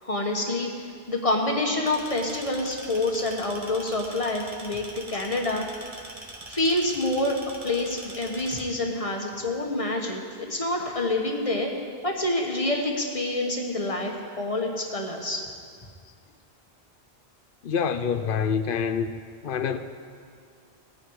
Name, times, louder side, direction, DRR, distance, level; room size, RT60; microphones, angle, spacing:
voice 1, 0.0-4.8 5.1-5.6 6.5-7.4 7.6-11.7 12.0-15.4, left 2 dB, 35° left, 1.5 m, -27 dB
sound 1, 1.9-8.6, right 2 dB, 35° right, 1.4 m, -43 dB
voice 2, 17.6-19.1 19.4-19.8, left 6 dB, 60° left, 0.8 m, -26 dB
18.5 x 9.4 x 4.8 m
omnidirectional pair, 1.1 m